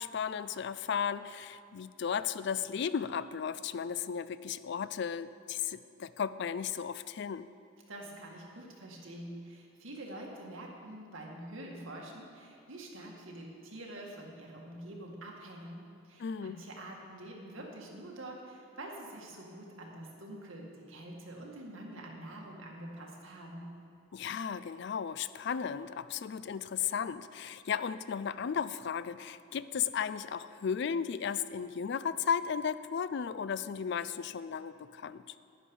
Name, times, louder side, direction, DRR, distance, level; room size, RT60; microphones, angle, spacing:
voice 1, 0.0-7.5 16.2-16.6 24.1-35.3, left 7 dB, 55° left, 15 dB, 0.4 m, -35 dB
voice 2, 7.9-23.7, right 1 dB, 75° right, -1 dB, 2.0 m, -46 dB
11.0 x 10.0 x 5.5 m, 2.8 s
head